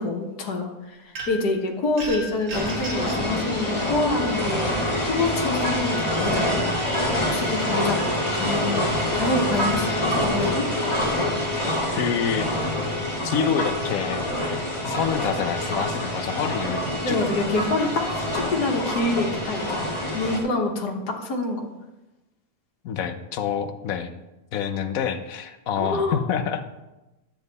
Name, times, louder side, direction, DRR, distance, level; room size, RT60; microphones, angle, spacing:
voice 1, 0.0-8.0 8.3-8.8 9.1-10.7 17.0-21.7 25.8-26.2, left 2 dB, 80° left, 1 dB, 1.8 m, -27 dB
sound 1, 1.1-1.5 2.0-3.2, right 1 dB, 65° right, 2.2 m, -35 dB
sound 2, 2.5-20.4, left 1 dB, 20° left, 2.0 m, -26 dB
voice 2, 12.0-12.5 13.2-14.2 14.8-17.2 22.8-24.1 24.5-26.6, left 7 dB, 65° left, 9 dB, 1.1 m, -27 dB
12.0 x 7.2 x 4.1 m, 1.0 s
omnidirectional pair, 1.7 m